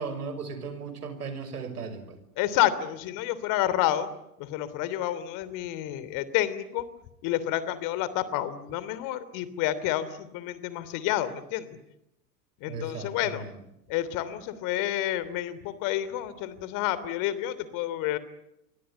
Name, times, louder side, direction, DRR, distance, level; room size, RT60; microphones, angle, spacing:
voice 1, 0.0-2.2 12.7-13.5, right 4 dB, 70° right, 10 dB, 6.0 m, -36 dB
voice 2, 2.4-4.1 4.4-6.8 7.2-11.8 12.6-13.4 13.9-18.2, left 13 dB, 40° left, 15 dB, 3.1 m, -29 dB
28.0 x 25.0 x 8.1 m, 0.85 s
figure-of-eight pair, 85°, 47 cm